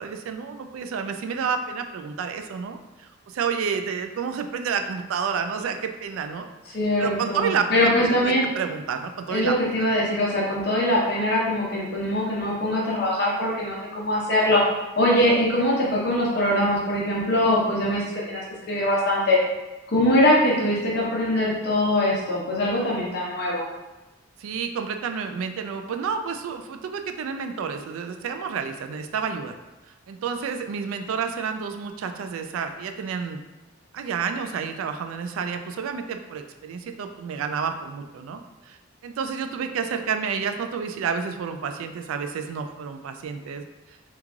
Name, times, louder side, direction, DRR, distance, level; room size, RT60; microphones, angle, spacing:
voice 1, 0.0-6.5 7.0-9.8 24.4-29.6 30.1-33.4 33.9-38.8 39.0-43.6, right 6 dB, 90° right, 7 dB, 0.3 m, -30 dB
voice 2, 6.7-8.5 9.3-14.6 15.0-19.4 19.9-23.7, left 1 dB, 55° left, -5 dB, 0.8 m, -22 dB
3.1 x 2.3 x 3.6 m, 1.1 s
head